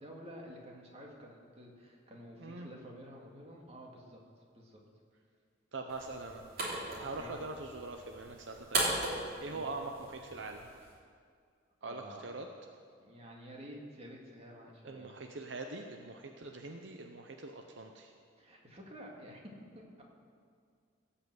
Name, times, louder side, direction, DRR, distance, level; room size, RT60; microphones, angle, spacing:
voice 1, 0.0-4.2 4.5-4.8 6.9-7.4 9.5-9.7 11.8-12.3 13.0-15.2 18.4-19.4 19.7-20.0, equal, 35° right, -1 dB, 2.0 m, -50 dB
voice 2, 5.7-6.4 7.0-10.7 11.8-12.5 14.8-18.1, right 3 dB, 70° right, 4 dB, 0.8 m, -43 dB
sound 1, 5.9-10.9, right 2 dB, 50° right, 2.9 m, -38 dB
17.0 x 5.7 x 7.8 m, 2.2 s
head